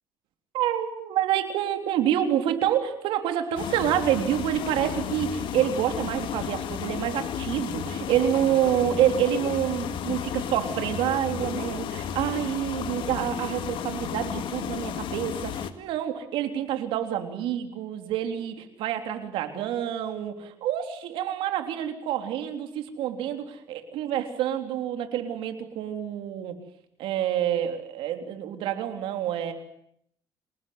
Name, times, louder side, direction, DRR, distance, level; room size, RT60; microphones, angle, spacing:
voice 1, 0.5-26.6 27.0-29.5, right 10 dB, 90° right, 6 dB, 3.6 m, -27 dB
sound 1, 3.6-15.7, left 9 dB, 70° left, 2.0 m, -33 dB
26.5 x 19.5 x 9.6 m, 0.73 s
cardioid pair, 105°, 9 cm